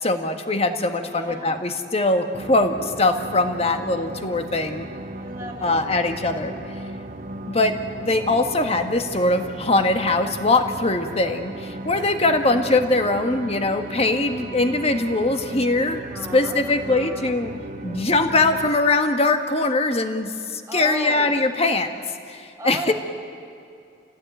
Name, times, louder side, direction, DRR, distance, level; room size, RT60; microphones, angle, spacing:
voice 1, 0.0-4.9 5.6-6.5 7.5-16.0 16.3-17.5 17.8-21.9 22.3-22.9, left 2 dB, 35° left, 6 dB, 1.6 m, -22 dB
voice 2, 1.0-1.6 5.2-5.9 12.0-12.6 16.1-17.4 20.7-21.4 22.6-22.9, right 1 dB, 15° right, 0 dB, 2.9 m, -36 dB
sound 1, 2.3-18.7, right 2 dB, 45° right, 1.2 m, -36 dB
28.5 x 17.0 x 9.3 m, 2.5 s
head